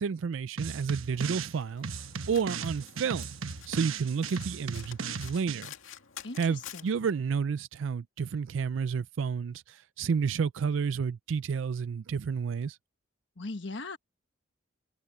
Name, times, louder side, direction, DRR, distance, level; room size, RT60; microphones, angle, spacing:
voice 1, 0.0-1.9 2.3-3.3 3.7-5.7 6.4-12.8, right 6 dB, 70° right, 0.4 m, -30 dB
sound 1, 0.6-1.5 1.8-5.6, right 5 dB, 85° right, 1.1 m, -37 dB
Domestic sounds home sounds, 1.1-7.1, left 9 dB, 80° left, 2.3 m, -50 dB
voice 2, 6.2-6.9 13.4-14.0, left 2 dB, 60° left, 1.3 m, -39 dB
head